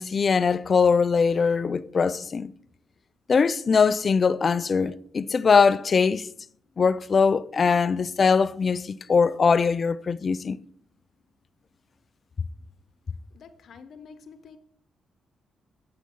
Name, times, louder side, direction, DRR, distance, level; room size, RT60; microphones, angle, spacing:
voice 1, 0.0-2.5 3.3-6.3 6.8-10.6, left 5 dB, 50° left, 0.4 m, -21 dB
voice 2, 13.3-14.6, left 5 dB, 65° left, 0.9 m, -47 dB
8.1 x 5.7 x 5.4 m
supercardioid pair, 60°, 0 cm